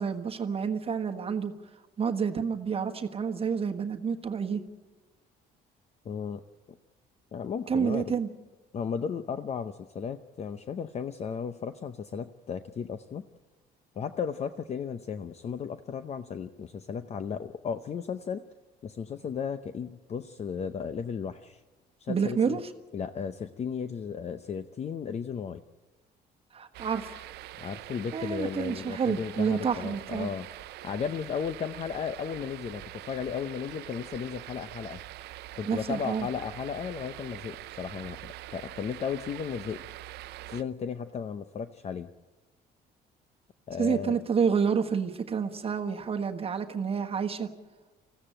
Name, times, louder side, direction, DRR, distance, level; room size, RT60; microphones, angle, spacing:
voice 1, 0.0-1.5 2.0-4.6 7.7-8.3 22.1-22.6 26.5-27.1 28.1-30.3 35.7-36.3 43.8-47.5, right 6 dB, 35° right, 4 dB, 1.4 m, -29 dB
voice 2, 6.0-6.4 6.7-6.8 7.3-8.1 8.7-13.2 14.0-18.4 18.8-21.6 22.0-22.6 22.9-25.6 27.6-30.5 30.8-35.0 35.6-39.8 40.5-42.1 43.7-44.2, left 7 dB, 40° left, 10 dB, 0.7 m, -35 dB
sound 1, 26.7-40.6, right 16 dB, 75° right, 0.6 m, -44 dB
21.0 x 15.5 x 8.9 m, 1.2 s
cardioid pair, 110°, 17 cm